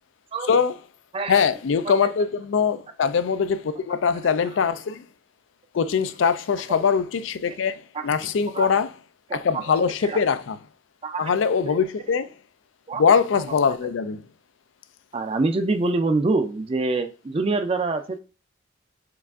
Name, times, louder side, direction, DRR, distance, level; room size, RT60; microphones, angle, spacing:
voice 1, 1.3-5.0 5.7-8.9 9.3-10.6 11.2-12.3 13.0-14.2, left 6 dB, 85° left, 0.4 m, -22 dB
voice 2, 9.3-9.7 10.0-10.2 11.0-11.3 11.7-11.8 12.9-13.0 13.5-13.6 15.1-18.2, right 3 dB, 30° right, 0.4 m, -25 dB
4.7 x 2.5 x 3.5 m
head